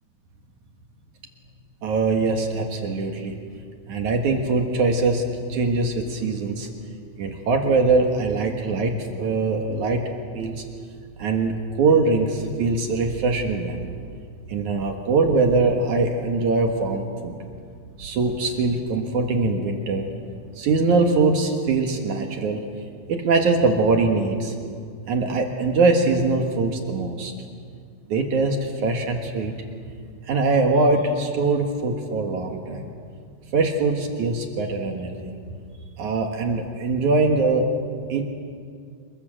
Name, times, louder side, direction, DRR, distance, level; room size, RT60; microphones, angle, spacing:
voice 1, 1.8-3.3 3.9-5.2 5.5-6.7 7.2-10.0 10.3-10.6 11.2-13.9 14.5-17.3 18.0-20.1 20.6-22.6 23.1-24.5 25.1-27.3 28.1-29.5 30.3-32.8 33.5-35.3 36.0-37.7 38.1-38.2, right 3 dB, 65° right, 3 dB, 2.0 m, -22 dB
27.5 x 22.0 x 7.6 m, 2.2 s
omnidirectional pair, 5.6 m